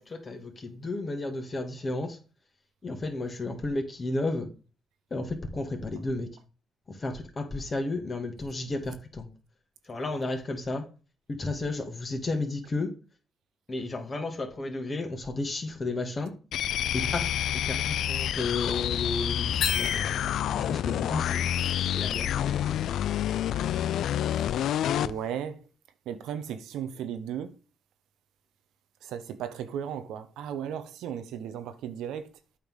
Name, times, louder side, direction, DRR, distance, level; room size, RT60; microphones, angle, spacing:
voice 1, 0.0-2.2 2.8-4.5 5.1-6.3 6.9-9.3 9.9-10.9 11.3-12.9 13.7-16.3 16.9-20.1 20.5-21.5 21.8-22.8, left 2 dB, 30° left, 2.1 m, -33 dB
sound 1, 16.5-25.2, left 10 dB, 75° left, 0.3 m, -28 dB
sound 2, 19.6-20.7, left 6 dB, 60° left, 1.5 m, -31 dB
voice 2, 25.0-25.7 26.1-27.5 29.0-32.3, right 9 dB, 85° right, 0.9 m, -35 dB
8.4 x 3.8 x 6.4 m
cardioid pair, 90°, 0 cm